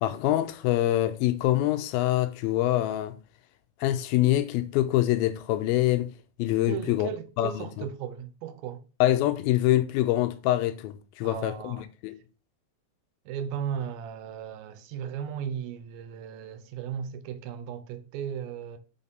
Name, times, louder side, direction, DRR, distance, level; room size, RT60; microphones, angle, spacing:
voice 1, 0.0-3.1 3.8-6.1 6.4-7.1 7.4-7.9 9.0-11.8 12.0-12.2, left 14 dB, 85° left, 2.5 m, -25 dB
voice 2, 6.7-8.8 11.2-11.9 13.3-18.8, right 8 dB, 90° right, 2.5 m, -36 dB
5.8 x 4.3 x 5.3 m
omnidirectional pair, 4.3 m